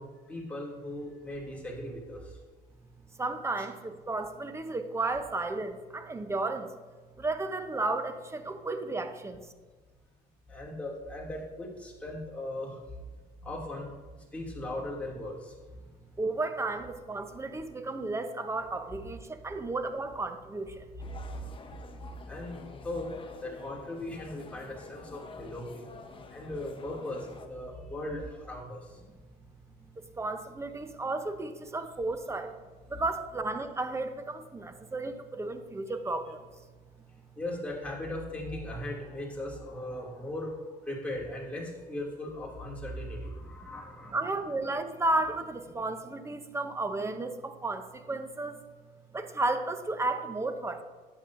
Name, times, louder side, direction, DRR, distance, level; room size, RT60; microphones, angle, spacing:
voice 1, 0.0-2.4 3.6-3.7 10.5-12.8 13.4-13.9 14.2-15.6 22.3-22.6 22.8-25.8 26.3-29.0 37.4-44.4, left 1 dB, 10° left, -4 dB, 2.4 m, -38 dB
voice 2, 3.2-6.7 7.2-9.4 16.2-20.9 30.0-32.5 32.9-36.4 44.1-48.6 49.1-50.8, right 2 dB, 15° right, 8 dB, 0.7 m, -33 dB
sound 1, 21.0-27.5, left 4 dB, 30° left, 0.8 m, -48 dB
11.5 x 8.0 x 2.6 m, 1.4 s
cardioid pair, 110°, 17 cm